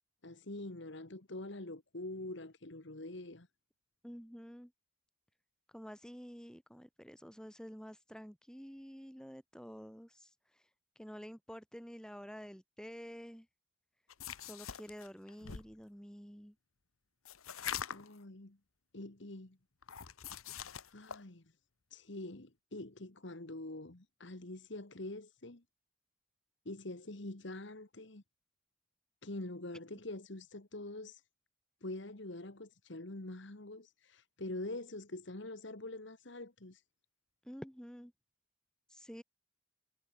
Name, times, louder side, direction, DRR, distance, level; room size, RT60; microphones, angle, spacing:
voice 1, 0.2-3.5 17.9-18.6 18.9-19.6 20.9-21.5 21.9-25.6 26.6-28.2 29.2-31.2 31.8-36.8, left 2 dB, 60° left, 1.7 m, -45 dB
voice 2, 4.0-4.7 5.7-10.7 11.0-13.5 14.4-16.6 37.4-38.1 38.9-39.2, equal, 5° left, 4.1 m, -49 dB
sound 1, 14.1-15.7 17.3-18.2 19.8-21.2, left 8 dB, 85° left, 1.2 m, -43 dB
head